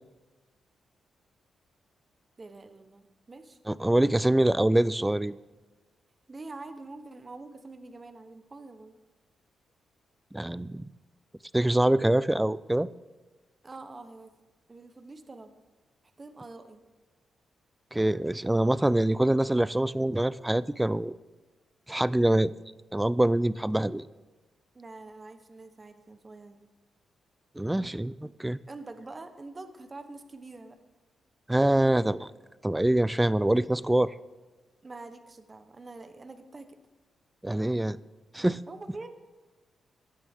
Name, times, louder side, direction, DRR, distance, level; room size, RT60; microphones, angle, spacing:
voice 1, 2.4-3.6 6.3-9.0 13.6-14.3 14.7-15.5 16.2-16.8 24.7-26.7 28.7-30.8 34.8-36.8 38.7-39.1, right 3 dB, 30° right, 8 dB, 1.0 m, -45 dB
voice 2, 3.7-5.3 10.3-10.9 11.5-12.9 17.9-21.1 21.9-22.5 22.9-24.1 27.6-28.6 31.5-32.3 32.6-34.1 37.4-38.0 38.3-38.6, right 1 dB, 10° right, 18 dB, 0.3 m, -25 dB
15.5 x 10.5 x 3.6 m, 1.2 s
cardioid pair, 100°, 0 cm